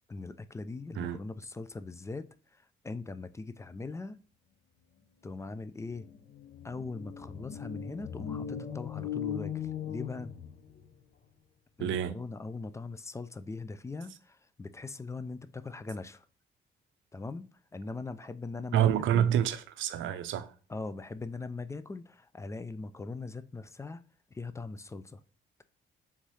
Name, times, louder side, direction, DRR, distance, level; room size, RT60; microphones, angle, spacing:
voice 1, 0.1-2.3 2.8-4.2 5.2-6.1 6.6-10.3 11.8-16.2 17.1-17.5 17.7-19.3 20.7-24.0 24.3-25.2, left 3 dB, 15° left, 0.3 m, -40 dB
sound 1, 5.6-5.7 5.9-10.9, left 9 dB, 50° left, 0.6 m, -39 dB
voice 2, 11.8-12.2 18.7-20.5, right 10 dB, 75° right, 0.5 m, -27 dB
3.6 x 3.2 x 4.1 m
cardioid pair, 90°, 20 cm